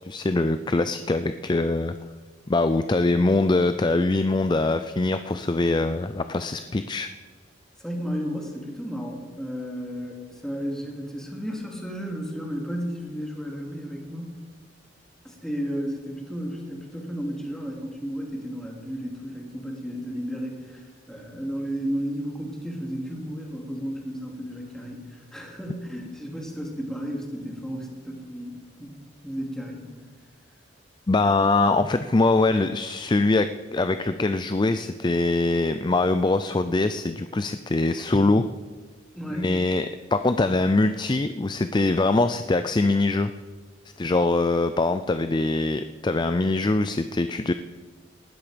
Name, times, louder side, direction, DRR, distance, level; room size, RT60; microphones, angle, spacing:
voice 1, 0.0-1.9 2.5-7.1 31.1-38.5 39.3-43.3 44.0-47.5, left 2 dB, 25° left, 10 dB, 0.4 m, -23 dB
voice 2, 7.8-14.3 15.2-29.0 29.2-29.9 39.1-39.7, equal, 5° left, 0 dB, 2.7 m, -33 dB
19.0 x 13.0 x 5.1 m, 1.5 s
head